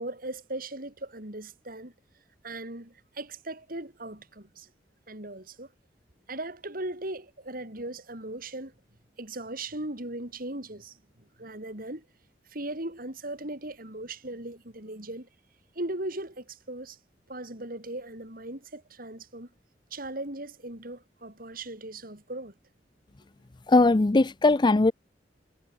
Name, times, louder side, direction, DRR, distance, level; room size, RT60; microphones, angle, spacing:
voice 1, 0.0-1.9 2.4-4.7 5.1-5.7 6.3-8.7 9.2-11.0 11.4-12.0 12.5-15.3 15.8-17.0 17.3-19.5 19.9-22.5, right 2 dB, 55° right, 5.7 m, -38 dB
voice 2, 23.7-24.9, left 2 dB, 25° left, 0.5 m, -20 dB
head